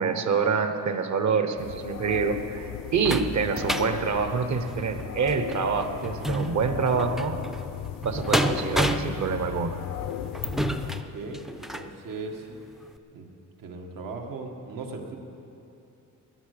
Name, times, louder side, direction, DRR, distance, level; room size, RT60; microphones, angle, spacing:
voice 1, 0.0-7.4 8.0-9.8, right 5 dB, 60° right, 8 dB, 1.1 m, -26 dB
sound 1, 1.6-11.0, left 12 dB, 85° left, 0.5 m, -36 dB
sound 2, 2.1-11.9 12.5-12.6 13.0-13.1, equal, ahead, 0.4 m, -31 dB
voice 2, 10.8-12.5 13.1-13.3 13.6-15.2, right 3 dB, 90° right, 2 dB, 1.9 m, -38 dB
17.5 x 9.8 x 6.8 m, 2.8 s
wide cardioid pair, 170°, 33 cm